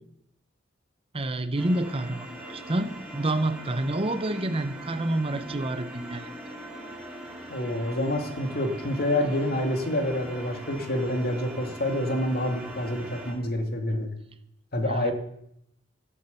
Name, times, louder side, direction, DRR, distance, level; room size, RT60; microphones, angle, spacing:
voice 1, 1.1-6.3 14.8-15.1, right 1 dB, 30° right, 11 dB, 1.0 m, -28 dB
sound 1, 1.6-13.3, right 1 dB, 5° right, 3.3 m, -41 dB
voice 2, 7.5-14.1 14.7-15.1, left 1 dB, 55° left, 5 dB, 2.2 m, -27 dB
14.0 x 11.5 x 7.0 m, 0.77 s
head